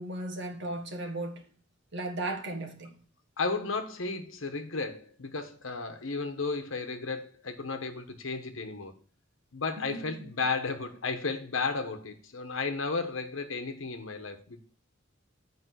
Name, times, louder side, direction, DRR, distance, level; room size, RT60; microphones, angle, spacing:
voice 1, 0.0-1.4 1.9-2.9 9.9-10.3, right 2 dB, 60° right, 1.6 m, -36 dB
voice 2, 3.4-8.9 9.5-14.7, left 4 dB, 75° left, 1.1 m, -33 dB
8.1 x 5.1 x 6.3 m
head